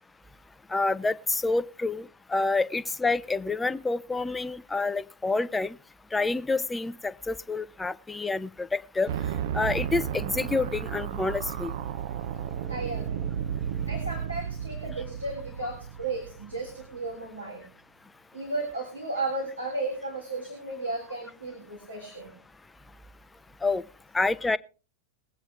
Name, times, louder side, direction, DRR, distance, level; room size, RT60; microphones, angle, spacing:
voice 1, 0.7-5.8 6.1-9.1 9.5-11.7 23.6-23.8 24.1-24.6, left 3 dB, 10° left, 16 dB, 0.5 m, -28 dB
sound 1, 9.1-17.1, right 9 dB, 50° right, 0.6 m, -33 dB
voice 2, 12.7-13.3 13.9-17.7 18.3-22.3, right 2 dB, 85° right, -1 dB, 3.5 m, -34 dB
21.5 x 8.7 x 3.3 m, 0.36 s
figure-of-eight pair, 90°, 0 cm